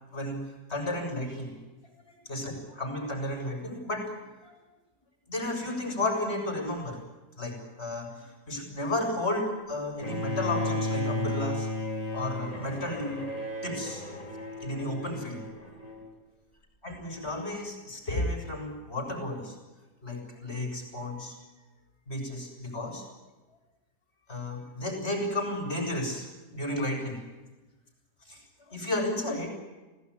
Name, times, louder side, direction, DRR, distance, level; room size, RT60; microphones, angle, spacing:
voice 1, 0.7-1.6 2.3-4.6 5.3-7.0 7.4-11.7 12.1-13.3 13.6-14.0 14.6-15.4 16.8-19.5 20.0-21.4 22.1-23.0 24.3-27.2 28.2-28.4 28.7-29.5, left 1 dB, 40° left, 4 dB, 8.1 m, -33 dB
Bowed string instrument, 10.0-16.1, left 1 dB, 25° left, 4.8 m, -34 dB
28.0 x 18.5 x 10.0 m, 1.2 s
omnidirectional pair, 1.7 m